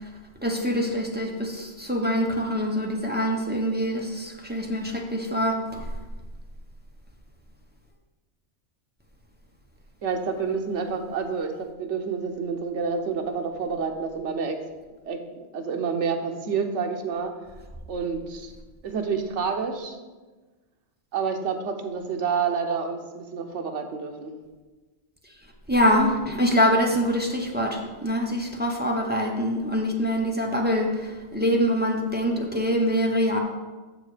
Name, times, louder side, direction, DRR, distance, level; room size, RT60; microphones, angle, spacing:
voice 1, 0.4-5.9 25.7-33.4, equal, 10° right, 0 dB, 0.9 m, -24 dB
voice 2, 10.0-14.6 15.0-15.2 15.5-17.3 17.9-18.5 18.8-20.0 21.1-24.3, right 5 dB, 75° right, 4 dB, 1.1 m, -28 dB
7.0 x 6.4 x 4.9 m, 1.3 s
omnidirectional pair, 1.2 m